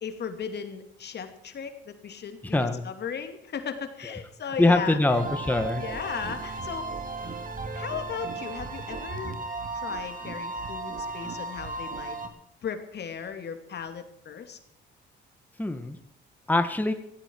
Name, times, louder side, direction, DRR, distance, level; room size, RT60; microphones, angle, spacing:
voice 1, 0.0-5.0 5.8-6.9 7.8-9.4 9.7-12.2 12.6-14.6, left 7 dB, 55° left, 7 dB, 2.6 m, -36 dB
voice 2, 2.5-2.8 4.6-5.8 15.6-16.0 16.5-16.9, left 2 dB, 10° left, 7 dB, 1.7 m, -23 dB
sound 1, 5.1-12.3, right 3 dB, 45° right, 3.0 m, -35 dB
16.5 x 16.0 x 4.7 m, 0.76 s
cardioid pair, 90°, 20 cm